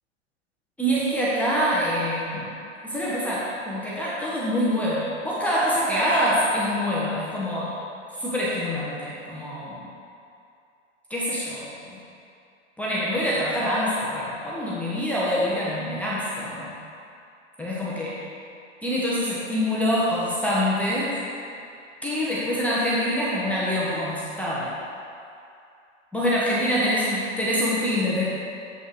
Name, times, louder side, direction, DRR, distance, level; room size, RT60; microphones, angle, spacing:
voice 1, 0.8-2.5 2.8-7.8 8.1-9.9 11.1-12.0 12.8-16.7 17.6-18.2 18.8-21.2 22.0-24.7 26.1-28.2, equal, 5° left, -9 dB, 1.3 m, -25 dB
7.9 x 5.4 x 4.8 m, 2.5 s
hypercardioid pair, 110°, 37 cm